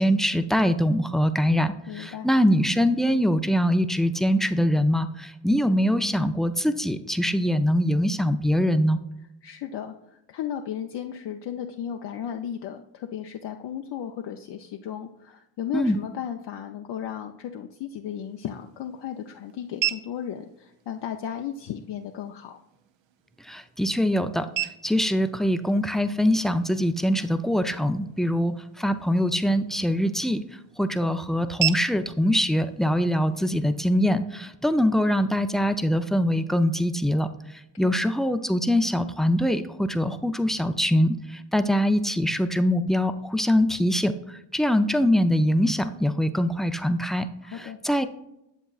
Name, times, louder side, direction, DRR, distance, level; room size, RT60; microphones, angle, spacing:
voice 1, 0.0-9.0 15.7-16.0 23.4-24.5 24.8-48.1, equal, ahead, 9 dB, 0.4 m, -23 dB
voice 2, 1.9-2.3 9.4-22.6 37.7-38.0 47.4-47.8, left 9 dB, 60° left, 3 dB, 0.6 m, -35 dB
sound 1, 18.0-34.0, right 12 dB, 70° right, 0.7 m, -38 dB
8.0 x 7.1 x 2.4 m, 0.87 s
supercardioid pair, 60°, 48 cm